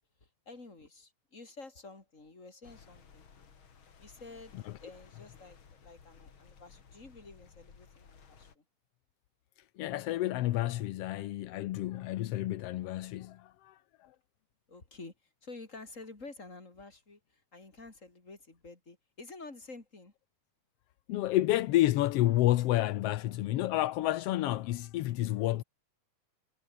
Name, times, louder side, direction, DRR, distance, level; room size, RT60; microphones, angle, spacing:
voice 1, 0.2-3.3 4.0-8.6 14.7-20.1, left 3 dB, 25° left, 4.3 m, -50 dB
sound 1, 2.6-8.6, left 6 dB, 45° left, 3.0 m, -57 dB
voice 2, 9.8-14.1 21.1-25.6, left 15 dB, 75° left, 1.4 m, -30 dB
omnidirectional pair, 3.5 m